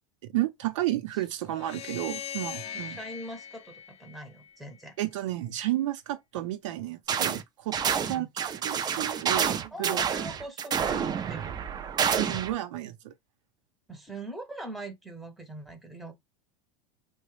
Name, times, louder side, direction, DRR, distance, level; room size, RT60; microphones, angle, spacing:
voice 1, 0.3-3.0 5.0-7.8 8.1-10.0 12.0-13.1, right 15 dB, 80° right, 0.8 m, -32 dB
sound 1, 1.5-4.8, left 9 dB, 40° left, 0.4 m, -40 dB
voice 2, 2.7-5.0 8.0-8.3 9.7-11.6 13.9-16.1, right 2 dB, ahead, 0.9 m, -41 dB
sound 2, 7.1-7.4 7.7-12.5, right 7 dB, 25° right, 0.5 m, -28 dB
3.0 x 2.2 x 3.2 m
supercardioid pair, 115°, 16 cm